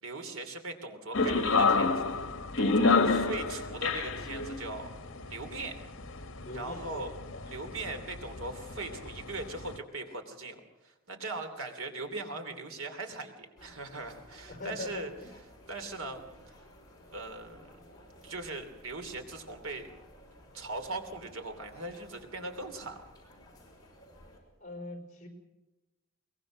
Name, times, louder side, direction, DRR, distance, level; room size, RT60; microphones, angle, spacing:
voice 1, 0.0-2.1 2.6-4.9 5.3-5.7 6.5-7.1 7.5-15.1 15.7-16.5 17.1-17.8 18.2-19.9 20.5-23.0, right 2 dB, 75° right, 6 dB, 3.0 m, -40 dB
sound 1, 1.1-9.8, left 4 dB, 60° left, 1.6 m, -30 dB
voice 2, 3.0-3.5 6.4-7.1 14.5-15.3 24.6-25.3, left 2 dB, 35° left, 5 dB, 4.8 m, -41 dB
sound 2, 13.6-24.4, left 1 dB, 20° left, 5.8 m, -55 dB
23.0 x 21.0 x 6.5 m, 1.0 s
head